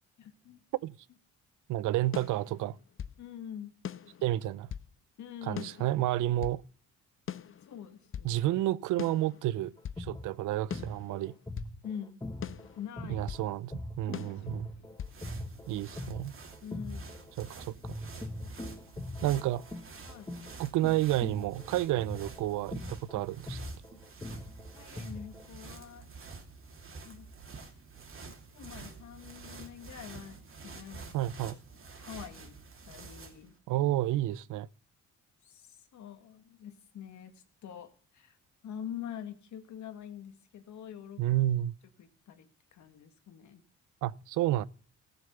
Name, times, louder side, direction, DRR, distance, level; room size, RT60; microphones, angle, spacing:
voice 1, 0.2-0.6 3.2-3.7 5.2-5.9 7.7-8.4 11.8-12.2 12.8-13.3 14.6-15.0 15.7-15.8 16.6-17.2 19.2-19.4 20.0-20.3 23.1-23.3 24.7-26.1 27.0-27.3 28.3-31.2 31.7-32.6 32.9-33.5 35.4-38.4 38.6-41.2 42.0-43.6, left 9 dB, 70° left, 1.7 m, -45 dB
voice 2, 1.7-2.8 4.2-4.7 5.4-6.6 8.2-9.7 10.0-11.3 13.1-14.7 15.7-16.3 17.4-17.9 19.2-19.6 20.6-23.6 31.1-31.6 33.7-34.7 41.2-41.7 44.0-44.6, right 14 dB, 85° right, 0.6 m, -30 dB
sound 1, 2.1-3.2 3.8-4.9 5.6-6.6 7.3-8.3 9.0-10.1 10.7-11.8 12.4-13.5 14.1-15.2, left 9 dB, 45° left, 0.7 m, -42 dB
sound 2, 9.8-17.5 17.8-25.5, left 1 dB, 15° left, 1.1 m, -42 dB
sound 3, 14.7-33.5, right 4 dB, 45° right, 2.7 m, -48 dB
14.5 x 7.1 x 6.7 m
cardioid pair, 90°, 30 cm